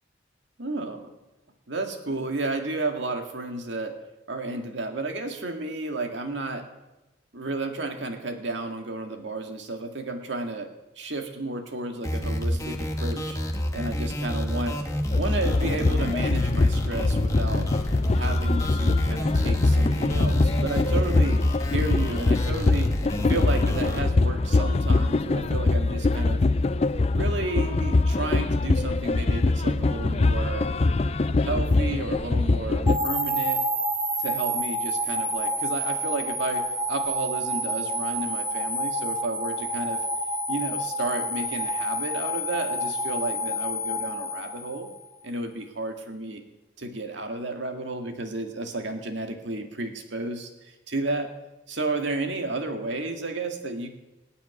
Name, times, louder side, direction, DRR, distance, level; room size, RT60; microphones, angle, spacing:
voice 1, 0.6-1.1 1.7-4.0 4.3-6.7 7.3-13.4 13.7-14.8 15.2-17.7 18.1-21.4 21.7-22.9 23.3-26.4 27.1-30.7 31.4-33.6 34.2-40.0 40.5-44.9 45.2-46.4 46.8-50.5 50.9-51.3 51.7-53.9, right 2 dB, 70° right, 4 dB, 2.0 m, -32 dB
sound 1, 12.0-24.0, equal, 15° left, 1.4 m, -29 dB
sound 2, 15.1-33.0, left 3 dB, 35° left, 0.4 m, -23 dB
sound 3, 32.9-45.0, right 1 dB, 20° right, 2.4 m, -28 dB
18.5 x 7.1 x 9.5 m, 1.0 s
head